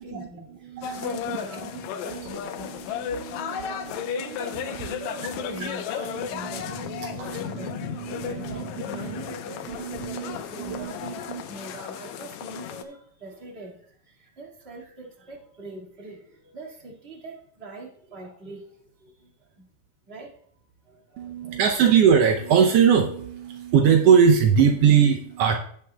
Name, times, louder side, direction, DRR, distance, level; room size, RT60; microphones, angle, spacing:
voice 1, 0.0-2.5 3.1-6.7 7.3-7.8 8.2-19.7 20.1-20.3 20.8-21.6, right 2 dB, 25° right, -3 dB, 1.6 m, -43 dB
voice 2, 0.7-1.4 1.6-5.7 6.0-9.1 9.7-11.4 21.2-25.6, right 7 dB, 90° right, 4 dB, 1.3 m, -23 dB
sound 1, 0.8-12.8, left 8 dB, 75° left, 1.9 m, -34 dB
16.0 x 7.6 x 2.2 m, 0.63 s
omnidirectional pair, 3.6 m